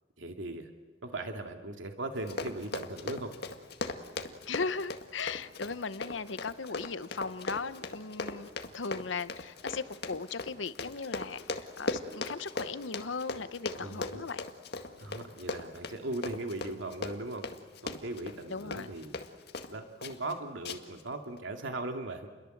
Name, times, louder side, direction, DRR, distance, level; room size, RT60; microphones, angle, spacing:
voice 1, 0.2-0.7 1.0-3.3 13.8-14.2 15.0-17.5 17.8-19.1 19.7-22.3, right 2 dB, 85° right, 2.4 m, -38 dB
Run, 2.1-19.7 20.0-20.3 20.6-21.0 21.4-21.5, left 3 dB, 55° left, 2.0 m, -38 dB
voice 2, 4.5-14.5 18.5-18.9, left 4 dB, 75° left, 0.9 m, -37 dB
29.5 x 22.5 x 7.9 m
head